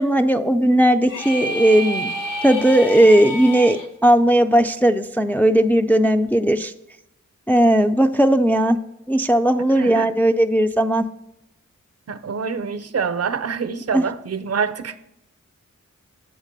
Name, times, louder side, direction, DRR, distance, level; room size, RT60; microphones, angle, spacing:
voice 1, 0.0-2.1 2.4-6.7 7.5-8.8 9.1-11.0 13.9-14.0, right 1 dB, 5° left, 6 dB, 0.3 m, -17 dB
sound 1, 1.1-3.9, right 1 dB, 80° left, 0.9 m, -29 dB
voice 2, 9.7-10.1 12.1-15.0, right 6 dB, 50° right, 12 dB, 0.5 m, -26 dB
8.2 x 3.3 x 6.5 m, 0.85 s
cardioid pair, 55°, 31 cm